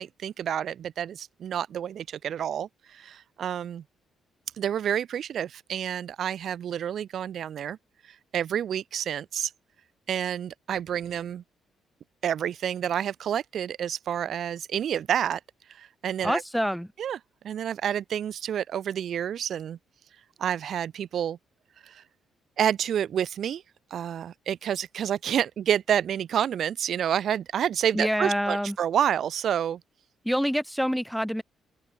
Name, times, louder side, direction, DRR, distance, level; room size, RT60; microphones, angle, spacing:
voice 1, 0.0-3.8 4.5-7.8 8.0-9.5 10.1-11.4 12.2-15.4 15.7-16.4 17.0-17.2 17.4-19.8 20.4-21.4 21.8-22.0 22.6-23.6 23.9-29.8, right 9 dB, 65° right, 2.7 m, -29 dB
voice 2, 16.2-16.9 27.9-28.8 30.2-31.4, equal, ahead, 1.0 m, -26 dB
open air
cardioid pair, 90°, 0 cm